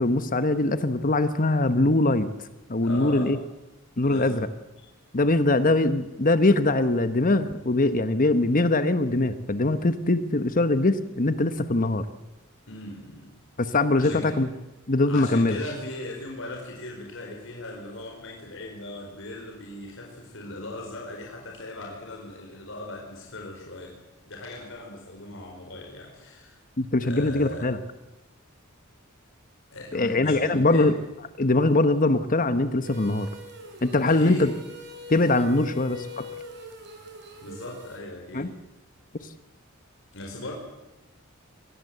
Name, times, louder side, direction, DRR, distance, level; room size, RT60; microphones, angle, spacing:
voice 1, 0.0-2.3 2.7-3.4 4.0-4.4 5.1-12.0 13.6-14.5 14.9-15.6 26.8-27.8 29.9-30.9 31.4-33.3 33.8-34.5 35.1-36.3 38.3-38.5, left 2 dB, 40° left, 11 dB, 1.2 m, -22 dB
voice 2, 2.8-3.3 4.0-4.4 4.8-4.9 12.7-13.3 13.6-14.3 15.1-24.0 24.3-26.6 27.0-27.7 29.7-30.9 34.0-34.6 35.6-35.8 37.4-38.5 40.1-40.5, left 2 dB, 65° left, 0 dB, 5.0 m, -38 dB
sound 1, 32.8-38.0, left 2 dB, 55° right, 6.2 m, -43 dB
25.0 x 19.5 x 8.0 m, 1.0 s
head